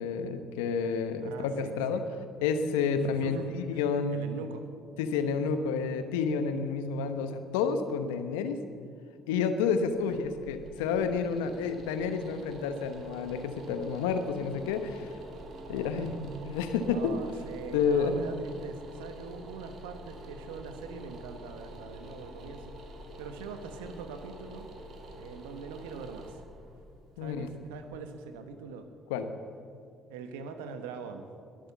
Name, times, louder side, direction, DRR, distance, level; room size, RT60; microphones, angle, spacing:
voice 1, 0.0-2.0 2.4-4.3 5.0-8.6 9.3-15.1 15.7-17.1 17.7-18.2 27.2-27.5 29.1-29.3, left 5 dB, 80° left, 9 dB, 1.0 m, -30 dB
voice 2, 1.2-2.0 2.9-3.8 4.1-4.6 15.7-16.1 16.9-22.7 23.2-24.7 25.2-26.4 27.2-28.9 30.1-31.3, right 5 dB, 85° right, 8 dB, 1.2 m, -42 dB
sound 1, 9.7-28.6, right 1 dB, 60° right, 2.5 m, -47 dB
21.5 x 7.7 x 7.2 m, 2.3 s
hypercardioid pair, 50°, 0 cm